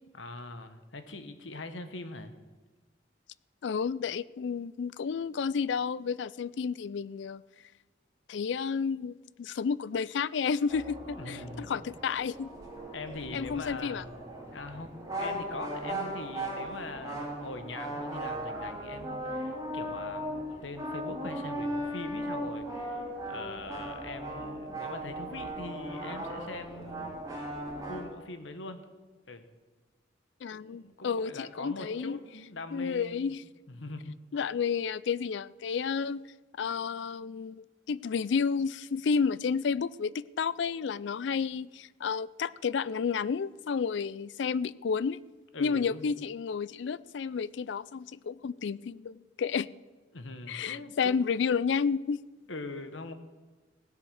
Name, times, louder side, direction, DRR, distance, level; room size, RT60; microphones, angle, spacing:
voice 1, 0.2-2.3 11.2-11.8 12.9-14.2 14.5-27.2 27.9-28.8 29.3-29.5 30.5-33.3 33.7-34.1 45.5-46.1 50.1-51.2 52.5-53.1, left 2 dB, 80° left, 9 dB, 1.2 m, -42 dB
voice 2, 3.6-7.4 8.3-12.5 13.3-14.0 30.4-32.2 32.7-33.4 34.3-36.2 36.6-45.2 45.6-49.7 50.5-52.2, left 6 dB, 65° left, 20 dB, 0.4 m, -31 dB
sound 1, 10.7-28.1, right 1 dB, 20° right, 2.8 m, -37 dB
17.0 x 7.9 x 6.4 m, 1.3 s
head